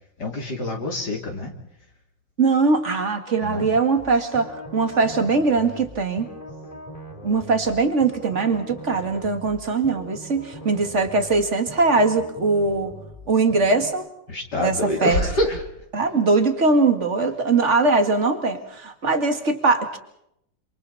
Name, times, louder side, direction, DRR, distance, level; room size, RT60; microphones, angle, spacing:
voice 1, 0.2-1.6 3.4-3.7 14.3-15.6, left 1 dB, 65° left, 1 dB, 3.7 m, -26 dB
voice 2, 2.4-6.3 7.2-12.9 13.3-14.1 14.6-14.7 15.0-15.2 15.9-20.0, right 3 dB, 40° right, 7 dB, 2.3 m, -21 dB
sound 1, 4.0-13.9, equal, 20° left, 4.0 m, -41 dB
27.5 x 27.0 x 4.2 m, 0.76 s
omnidirectional pair, 1.9 m